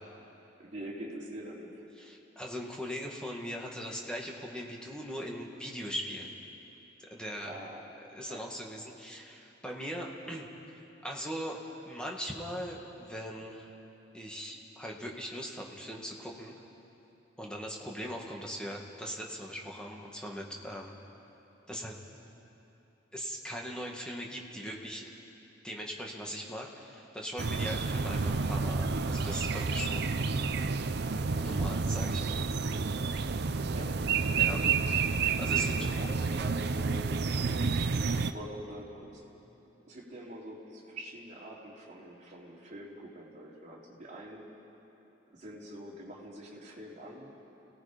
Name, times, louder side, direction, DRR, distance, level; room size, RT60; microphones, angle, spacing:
voice 1, 0.6-1.8 7.1-7.9 8.3-8.4 31.0-31.7 33.7-34.8 35.4-37.8 38.3-39.2 39.8-44.4 45.3-47.3, right 1 dB, 40° right, -4 dB, 3.4 m, -45 dB
voice 2, 2.0-6.3 7.0-7.6 8.1-13.7 14.1-16.5 17.4-20.9 21.7-22.0 23.1-25.1 25.6-30.1 31.4-32.4 34.4-34.6 35.4-35.7, equal, 5° left, -1 dB, 1.9 m, -40 dB
sound 1, 27.4-38.3, right 4 dB, 55° right, 0.6 m, -30 dB
30.0 x 17.5 x 5.2 m, 2.9 s
head